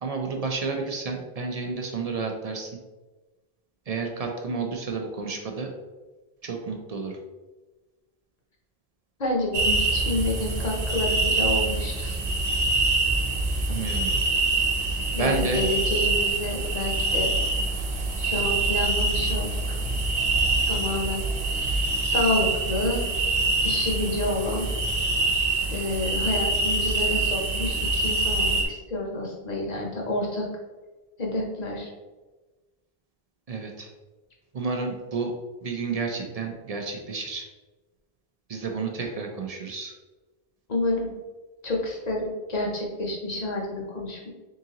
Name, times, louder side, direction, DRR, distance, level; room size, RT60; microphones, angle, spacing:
voice 1, 0.0-2.7 3.9-5.7 6.4-7.2 13.7-14.1 15.2-15.6 33.5-33.9 34.5-35.3 35.6-37.5 38.5-39.9, right 4 dB, 50° right, 2 dB, 0.5 m, -30 dB
voice 2, 9.2-12.2 15.1-17.3 18.2-19.8 20.6-23.0 23.6-24.7 25.7-30.4 31.2-31.9 40.7-41.1 41.6-44.3, left 1 dB, 45° left, -1 dB, 0.9 m, -29 dB
sound 1, 9.5-28.6, right 2 dB, 75° right, 0.9 m, -25 dB
3.8 x 3.7 x 2.8 m, 1.2 s
omnidirectional pair, 1.1 m